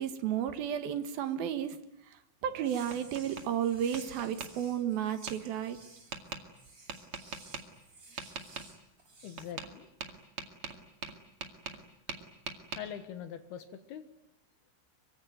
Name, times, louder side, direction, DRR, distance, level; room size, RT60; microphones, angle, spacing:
voice 1, 0.0-1.8 2.4-5.8, right 9 dB, 65° right, 9 dB, 2.7 m, -32 dB
Tap, 2.4-3.5 3.9-4.5 5.3-5.4 6.1-6.4 6.9-7.6 8.2-8.7 9.4-9.7 10.0-11.8 12.1-12.8, right 5 dB, 45° right, 1.9 m, -41 dB
sound 1, 2.6-9.5, right 3 dB, 20° right, 3.1 m, -55 dB
voice 2, 9.2-9.9 12.1-12.2 12.8-14.1, left 9 dB, 65° left, 10 dB, 2.9 m, -43 dB
25.0 x 24.0 x 9.3 m, 0.77 s
omnidirectional pair, 5.6 m